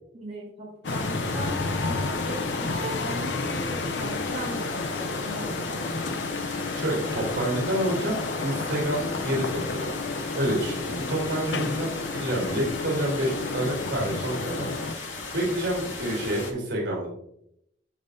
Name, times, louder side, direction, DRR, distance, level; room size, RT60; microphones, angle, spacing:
voice 1, 0.1-6.2, right 1 dB, 35° right, -4 dB, 3.8 m, -38 dB
sound 1, 0.8-14.9, left 3 dB, 60° left, 0.6 m, -31 dB
sound 2, 0.9-16.5, left 3 dB, 80° left, 2.6 m, -37 dB
voice 2, 6.7-9.9 10.3-15.0 15.3-17.1, right 1 dB, 70° right, -3 dB, 3.5 m, -28 dB
15.0 x 5.5 x 2.7 m, 0.74 s
head